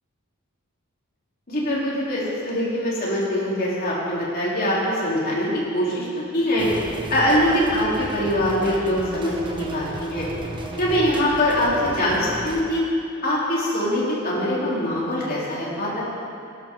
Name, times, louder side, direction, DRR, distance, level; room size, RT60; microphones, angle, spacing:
voice 1, 1.5-6.1 6.3-6.7 7.1-10.3 10.8-12.8 13.2-16.1, equal, 45° left, -7 dB, 3.7 m, -23 dB
sound 1, 6.6-12.6, right 1 dB, 20° right, 1.1 m, -34 dB
17.5 x 11.0 x 3.9 m, 2.6 s
head